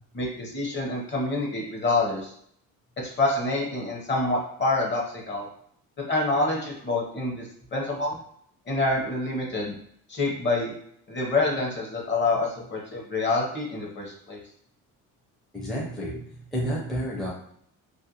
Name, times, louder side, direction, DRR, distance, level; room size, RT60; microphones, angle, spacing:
voice 1, 0.1-2.3 3.0-5.5 6.1-7.4 7.7-8.2 8.7-9.7 10.1-10.7 11.1-14.4, left 2 dB, 30° left, -1 dB, 0.8 m, -27 dB
voice 2, 15.5-17.3, equal, ahead, -4 dB, 0.5 m, -30 dB
2.5 x 2.1 x 2.8 m, 0.65 s
cardioid pair, 100°, 34 cm